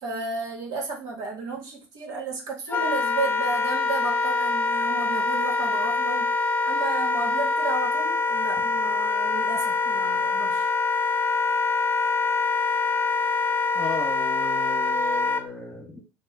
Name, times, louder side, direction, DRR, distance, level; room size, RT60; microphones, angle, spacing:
voice 1, 0.0-6.3 6.6-10.7, right 3 dB, 65° right, 1 dB, 1.1 m, -33 dB
Wind instrument woodwind instrument, 2.7-15.4, left 3 dB, 30° left, 0.4 m, -24 dB
voice 2, 13.7-16.1, left 3 dB, 10° left, -2 dB, 1.1 m, -35 dB
3.0 x 2.0 x 3.7 m, 0.31 s
hypercardioid pair, 75°, 7 cm